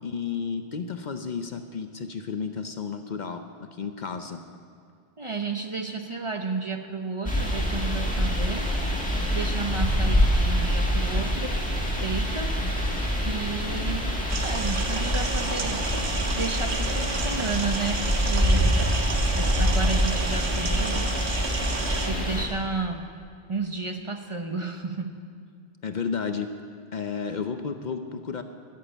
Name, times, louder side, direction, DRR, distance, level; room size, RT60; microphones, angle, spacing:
voice 1, 0.0-4.4 25.8-26.6 26.9-28.4, left 5 dB, 50° left, 8 dB, 0.7 m, -32 dB
voice 2, 5.2-8.7 9.3-11.6 11.9-12.5 13.3-14.1 14.4-19.0 19.3-21.1 22.0-23.1 23.5-25.1, right 4 dB, 35° right, 5 dB, 0.7 m, -32 dB
sound 1, 7.3-22.5, equal, 5° left, 2.1 m, -25 dB
sound 2, 14.3-22.1, right 5 dB, 85° right, 1.3 m, -32 dB
13.0 x 7.5 x 9.9 m, 2.2 s
omnidirectional pair, 1.1 m